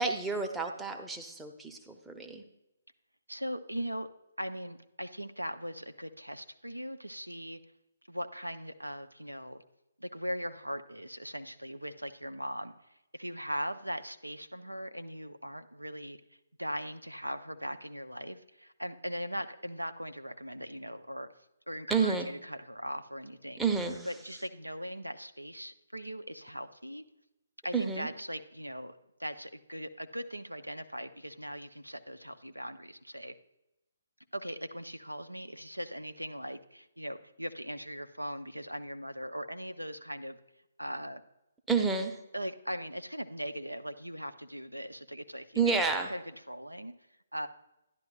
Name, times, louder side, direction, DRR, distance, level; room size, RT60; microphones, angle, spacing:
voice 1, 0.0-2.4 21.9-22.3 23.6-24.1 27.7-28.1 41.7-42.2 45.6-46.1, right 5 dB, 5° right, 3 dB, 0.7 m, -30 dB
voice 2, 3.3-4.1 4.4-7.6 8.1-9.6 10.0-12.7 13.1-16.2 16.6-21.3 21.7-23.6 24.1-27.0 27.6-28.9 29.2-33.4 34.3-40.4 40.8-41.2 42.3-45.8 46.1-46.2 46.5-46.9 47.3-47.5, equal, 90° right, 10 dB, 0.6 m, -39 dB
12.0 x 10.5 x 2.4 m, 0.91 s
figure-of-eight pair, 135°, 0 cm